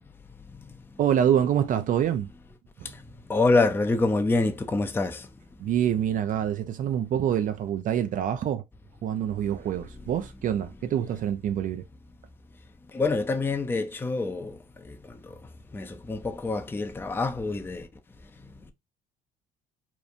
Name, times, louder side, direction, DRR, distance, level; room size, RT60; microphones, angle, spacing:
voice 1, 1.0-2.3 2.8-2.9 5.6-8.6 9.0-11.8, right 10 dB, 50° right, 0.4 m, -26 dB
voice 2, 3.3-5.3 12.9-14.6 15.7-17.9, left 3 dB, 10° left, 0.4 m, -26 dB
2.8 x 2.1 x 2.5 m
supercardioid pair, 75°, 18 cm